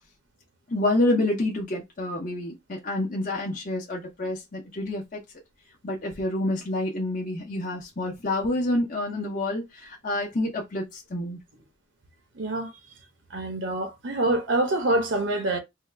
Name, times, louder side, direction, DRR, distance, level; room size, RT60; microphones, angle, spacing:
voice 1, 0.7-5.2 5.8-11.4, left 1 dB, 45° left, 0.8 m, -28 dB
voice 2, 12.3-12.7 13.3-15.6, right 2 dB, 70° right, 0.9 m, -25 dB
2.8 x 2.3 x 3.3 m
head